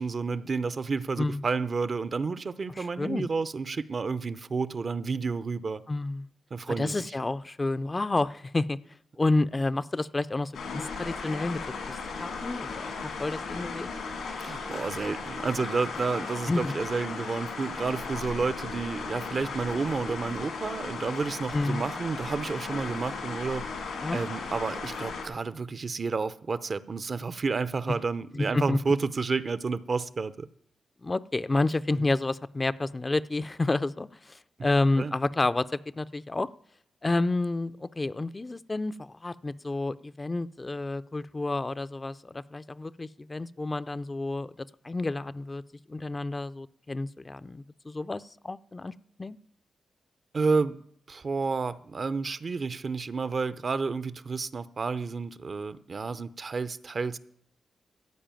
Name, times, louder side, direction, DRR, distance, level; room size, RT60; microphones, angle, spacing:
voice 1, 0.0-5.8 6.5-6.9 14.4-23.6 24.1-30.5 32.0-32.1 35.0-35.1 50.3-50.8 51.1-57.2, right 4 dB, 55° right, 0.6 m, -30 dB
voice 2, 2.8-3.3 5.9-6.3 6.8-8.8 9.2-11.6 11.9-14.0 16.5-16.7 21.5-21.8 24.0-24.2 28.3-28.8 31.0-36.5 37.0-45.6 45.9-48.9 49.2-49.4, left 2 dB, 30° left, 0.4 m, -30 dB
sound 1, 10.5-25.3, left 4 dB, 85° left, 2.9 m, -36 dB
14.0 x 5.0 x 9.0 m
supercardioid pair, 50°, 0 cm